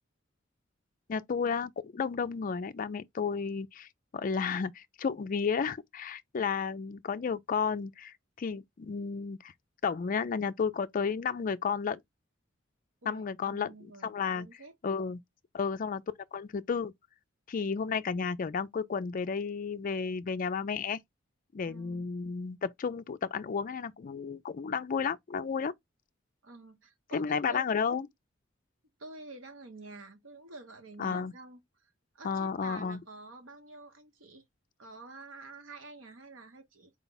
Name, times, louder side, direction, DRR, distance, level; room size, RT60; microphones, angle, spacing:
voice 1, 1.1-9.5 9.8-12.0 13.1-13.7 14.0-14.5 14.8-15.2 15.5-16.0 16.3-16.9 17.5-21.0 21.5-25.7 27.1-28.1 31.0-31.3 32.2-33.0, left 5 dB, 45° left, 0.4 m, -32 dB
voice 2, 13.0-14.7 21.6-22.1 26.4-27.8 29.0-31.9 32.1-34.4 34.8-36.9, right 3 dB, 85° right, 1.1 m, -49 dB
4.3 x 2.3 x 3.9 m
head